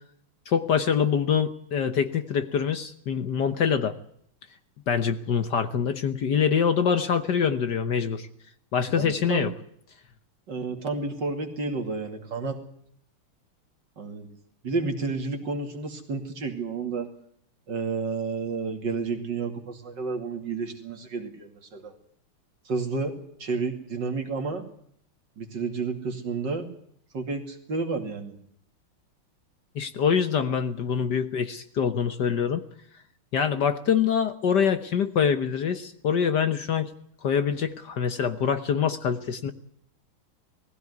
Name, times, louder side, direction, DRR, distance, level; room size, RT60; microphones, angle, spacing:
voice 1, 0.5-4.0 4.9-8.3 8.7-9.5 29.7-32.6 33.3-36.9 37.2-39.5, left 7 dB, 55° left, 10 dB, 1.5 m, -25 dB
voice 2, 8.9-9.5 10.5-12.6 14.0-14.3 14.6-17.1 17.7-21.9 22.6-24.6 25.4-26.7 27.1-28.4, right 4 dB, 55° right, 5 dB, 3.1 m, -31 dB
20.0 x 16.0 x 9.6 m, 0.67 s
omnidirectional pair, 2.4 m